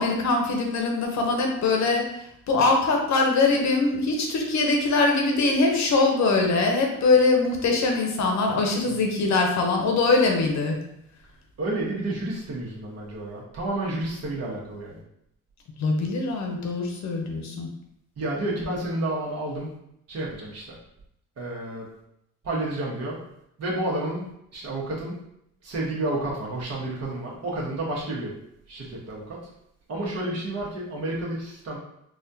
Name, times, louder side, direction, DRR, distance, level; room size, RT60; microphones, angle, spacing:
voice 1, 0.0-2.1 2.5-10.8 15.8-17.7, left 3 dB, 65° left, 2 dB, 0.8 m, -22 dB
voice 2, 11.6-15.0 18.2-19.7 20.1-20.7 21.4-21.9 22.4-23.2 23.6-24.2 24.5-25.1 25.6-28.3 28.7-29.4 29.9-31.8, right 1 dB, 55° right, -4 dB, 1.3 m, -30 dB
4.1 x 2.4 x 2.7 m, 0.77 s
cardioid pair, 90°, 30 cm